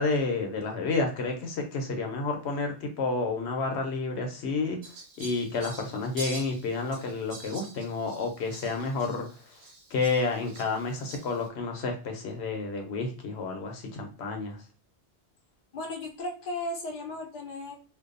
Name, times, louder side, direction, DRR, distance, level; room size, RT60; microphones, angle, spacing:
voice 1, 0.0-4.8 5.2-9.3 9.9-14.6, left 3 dB, 75° left, 3 dB, 0.9 m, -30 dB
Fowl, 4.8-11.5, right 2 dB, 80° right, 1.0 m, -46 dB
voice 2, 15.7-17.8, left 2 dB, 50° left, 2 dB, 0.6 m, -35 dB
2.6 x 2.2 x 2.4 m, 0.38 s
omnidirectional pair, 1.1 m